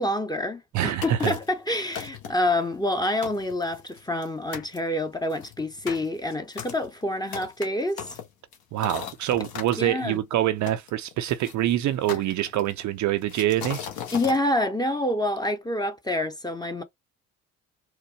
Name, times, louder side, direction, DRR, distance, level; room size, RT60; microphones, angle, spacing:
voice 1, 0.0-8.2 9.8-10.2 14.1-16.8, left 1 dB, 10° left, 0.8 m, -27 dB
voice 2, 0.7-1.3 8.7-13.8, right 13 dB, 40° right, 0.5 m, -25 dB
sound 1, 1.0-1.6 1.9-2.5 2.9-3.0 3.2-4.3 4.5-4.8 5.3-9.8 10.7-11.5 12.1-12.8 13.3-14.4, left 8 dB, 50° left, 1.2 m, -37 dB
4.5 x 2.0 x 2.9 m
figure-of-eight pair, 50°, 44 cm